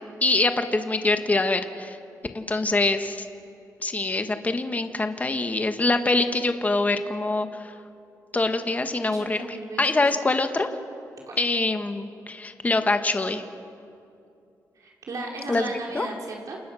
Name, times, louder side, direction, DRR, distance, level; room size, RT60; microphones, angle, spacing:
voice 1, 0.2-2.0 2.3-3.2 3.8-7.7 8.3-10.7 11.4-13.4 15.5-15.6 15.9-16.1, left 2 dB, 25° left, 7 dB, 1.6 m, -24 dB
voice 2, 9.0-10.0 11.3-11.4 14.7-16.6, right 2 dB, 60° right, -1 dB, 4.6 m, -36 dB
29.0 x 28.5 x 6.4 m, 2.6 s
cardioid pair, 95°, 7 cm